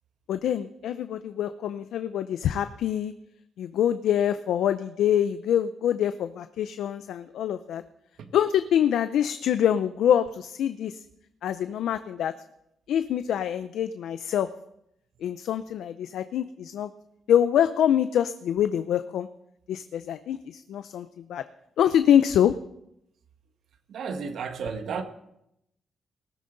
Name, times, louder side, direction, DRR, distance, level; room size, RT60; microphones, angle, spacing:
voice 1, 0.3-3.1 3.6-7.8 8.3-11.0 11.4-12.3 12.9-14.5 15.2-16.9 17.3-19.3 19.7-21.4 21.8-22.6, left 10 dB, 90° left, 11 dB, 0.5 m, -25 dB
voice 2, 23.9-25.0, right 5 dB, 75° right, 7 dB, 1.5 m, -33 dB
19.0 x 12.5 x 3.9 m, 0.80 s
cardioid pair, 110°, 0 cm